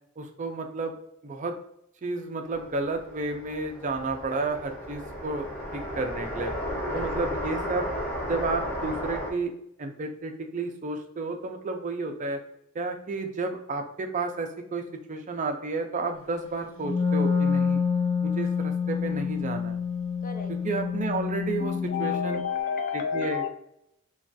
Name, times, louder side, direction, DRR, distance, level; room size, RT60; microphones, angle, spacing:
voice 1, 0.2-0.9 1.2-1.6 2.0-5.5 5.7-6.5 6.9-7.9 8.3-9.5 9.8-12.4 12.7-14.8 15.1-17.8 18.2-19.8 20.6-21.7 22.0-22.4 23.1-23.4, right 3 dB, 35° right, 5 dB, 0.4 m, -31 dB
sound 1, 2.5-9.3, equal, 10° left, 0.7 m, -34 dB
Wind instrument woodwind instrument, 16.8-22.5, left 6 dB, 70° left, 1.0 m, -27 dB
voice 2, 20.2-20.5 21.6-23.5, left 6 dB, 40° left, 6 dB, 0.4 m, -30 dB
3.1 x 2.3 x 2.5 m, 0.76 s
head